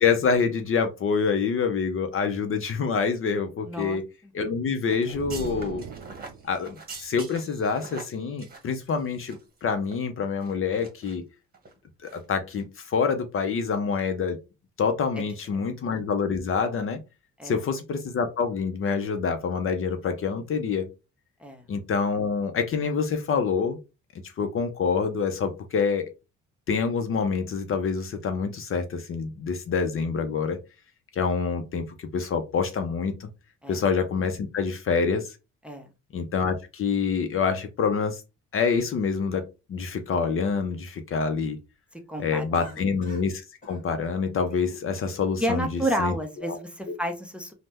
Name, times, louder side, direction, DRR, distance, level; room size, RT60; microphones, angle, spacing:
voice 1, 0.0-4.1 4.3-5.9 6.4-11.2 12.0-14.4 14.8-17.0 17.4-20.9 21.7-23.8 24.4-26.1 26.7-30.6 31.1-33.3 33.7-35.4 36.1-38.2 38.5-41.6 42.2-46.1 46.4-46.6, left 5 dB, 45° left, 0.5 m, -26 dB
voice 2, 3.7-4.0 15.2-15.3 15.5-15.7 17.4-17.6 21.4-21.6 33.6-33.8 35.6-35.9 42.1-42.9 45.4-47.5, right 1 dB, 5° right, 0.6 m, -31 dB
sound 1, 4.9-9.6 9.8-10.0 10.4-11.1 11.5-11.7 12.0-12.2 12.5-12.6, right 4 dB, 30° right, 1.1 m, -44 dB
sound 2, 5.1-6.7, right 6 dB, 60° right, 0.5 m, -38 dB
Cough, 42.5-43.3 43.6-43.8 44.5-44.9 45.3-46.0, equal, 25° left, 1.4 m, -48 dB
3.3 x 2.1 x 2.8 m
cardioid pair, 90°, 30 cm